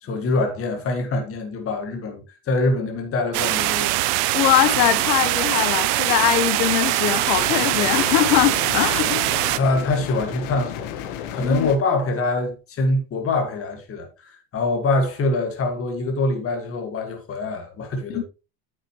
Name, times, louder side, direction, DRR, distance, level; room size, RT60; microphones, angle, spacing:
voice 1, 0.0-3.9 9.5-10.9 11.3-18.2, left 2 dB, 25° left, 1.9 m, -24 dB
sound 1, 3.3-9.6, right 17 dB, 70° right, 0.7 m, -22 dB
voice 2, 4.3-9.3 11.4-11.7 18.1-18.2, left 13 dB, 85° left, 1.1 m, -21 dB
sound 2, 7.4-11.8, left 10 dB, 65° left, 1.3 m, -33 dB
8.8 x 6.6 x 3.0 m
supercardioid pair, 145°, 49 cm